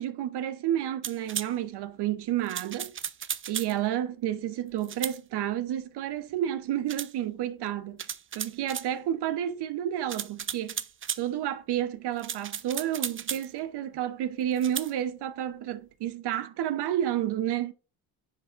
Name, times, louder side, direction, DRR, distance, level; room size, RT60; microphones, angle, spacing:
voice 1, 0.0-2.9 3.5-8.0 8.3-10.8 11.2-17.7, right 11 dB, 60° right, 1.0 m, -30 dB
sound 1, 1.0-1.5 2.5-3.7 4.8-5.2 6.9-7.1 8.0-8.9 10.1-11.2 12.2-13.5 14.6-14.9, right 8 dB, 30° right, 0.5 m, -35 dB
9.9 x 4.1 x 2.6 m
supercardioid pair, 70°, 45 cm